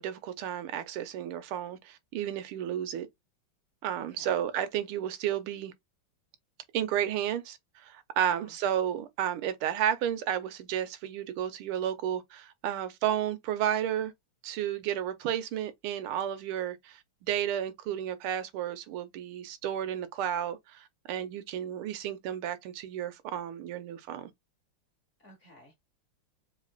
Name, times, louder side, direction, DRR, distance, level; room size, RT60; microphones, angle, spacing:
voice 1, 0.0-3.1 3.8-5.7 6.7-14.1 14.4-24.3, right 10 dB, 85° right, 1.6 m, -32 dB
voice 2, 4.0-4.3 8.3-8.6 25.2-25.8, equal, 45° left, 1.1 m, -56 dB
4.8 x 3.7 x 2.3 m
omnidirectional pair, 2.4 m